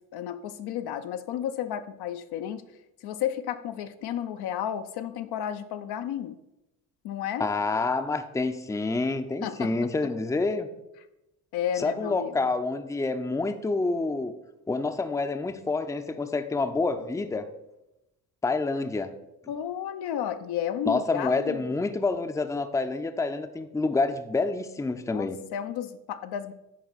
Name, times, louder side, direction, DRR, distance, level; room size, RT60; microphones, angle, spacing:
voice 1, 0.1-2.6 3.0-6.4 7.0-7.5 9.4-9.7 11.5-12.3 19.5-21.6 25.0-26.5, left 10 dB, 60° left, 9 dB, 0.6 m, -32 dB
voice 2, 7.4-10.7 11.8-14.3 14.7-17.5 18.4-19.1 20.9-25.4, left 3 dB, 5° left, 8 dB, 0.6 m, -28 dB
10.5 x 4.3 x 4.1 m, 0.91 s
hypercardioid pair, 55°, 44 cm